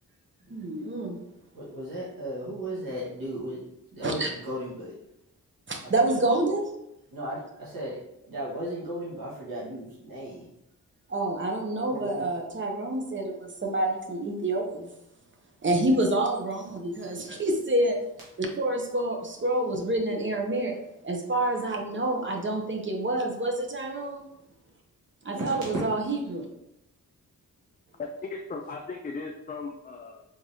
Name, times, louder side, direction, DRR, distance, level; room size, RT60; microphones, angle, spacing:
voice 1, 0.5-1.2 4.0-4.3 5.7-6.7 11.1-14.9 15.6-18.0 18.4-20.8 21.0-24.2 25.2-26.5, right 2 dB, 35° right, 2 dB, 0.7 m, -28 dB
voice 2, 1.5-3.6 3.9-5.0 5.8-6.2 7.1-10.5 11.7-12.3 25.3-26.1, right 1 dB, 90° right, -7 dB, 1.3 m, -36 dB
voice 3, 28.0-30.2, left 4 dB, 25° left, 1 dB, 0.4 m, -37 dB
3.6 x 3.3 x 2.7 m, 0.83 s
cardioid pair, 65°, 34 cm